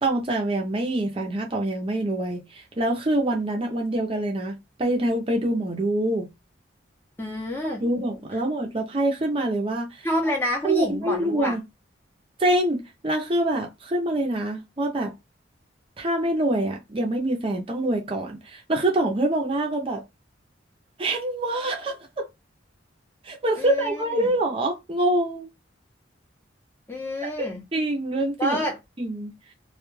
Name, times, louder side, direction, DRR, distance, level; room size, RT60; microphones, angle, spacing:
voice 1, 0.0-6.3 7.6-10.1 10.6-11.6 12.4-15.1 16.0-20.0 21.0-22.3 23.2-25.5 27.7-28.6 29.0-29.3, right 1 dB, 30° right, 0.5 m, -25 dB
voice 2, 7.2-7.8 10.0-11.6 23.6-24.3 26.9-27.6 28.4-28.8, equal, 10° left, 0.6 m, -28 dB
2.2 x 2.2 x 3.1 m
head